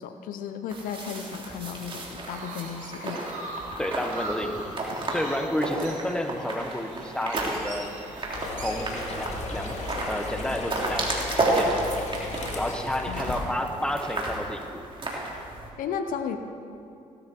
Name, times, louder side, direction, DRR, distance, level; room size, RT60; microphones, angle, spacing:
voice 1, 0.0-3.2 13.1-13.6 15.8-16.4, left 7 dB, 80° left, 8 dB, 0.8 m, -34 dB
sound 1, 0.7-15.7, right 2 dB, 40° right, 3.4 m, -32 dB
Chirp tweet, 1.8-12.3, right 2 dB, 60° right, 2.7 m, -43 dB
voice 2, 3.8-4.8 5.1-8.0 8.5-9.7 10.1-11.8 12.5-14.8, left 1 dB, 5° left, 5 dB, 1.5 m, -31 dB
sound 2, 8.3-13.4, left 3 dB, 55° left, 2.2 m, -36 dB
17.5 x 12.5 x 4.6 m, 2.6 s
supercardioid pair, 65°, 14 cm